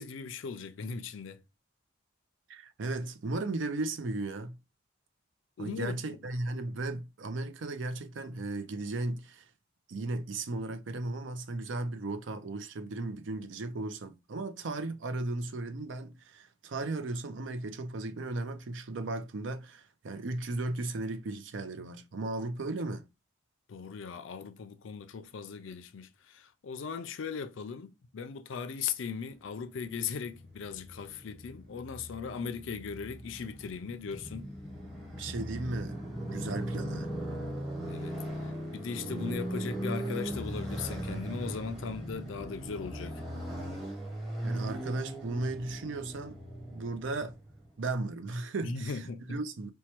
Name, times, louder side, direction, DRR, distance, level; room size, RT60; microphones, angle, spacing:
voice 1, 0.0-1.4 5.6-6.0 23.7-34.5 37.9-43.2 48.6-49.4, left 6 dB, 80° left, 0.4 m, -38 dB
voice 2, 2.5-4.6 5.6-9.5 9.9-23.1 35.2-36.0 36.3-37.1 44.4-46.4 46.7-47.4 47.8-49.7, right 2 dB, 75° right, 0.5 m, -36 dB
Motorcycle, 29.5-47.7, right 1 dB, ahead, 0.8 m, -39 dB
4.4 x 2.2 x 2.9 m
head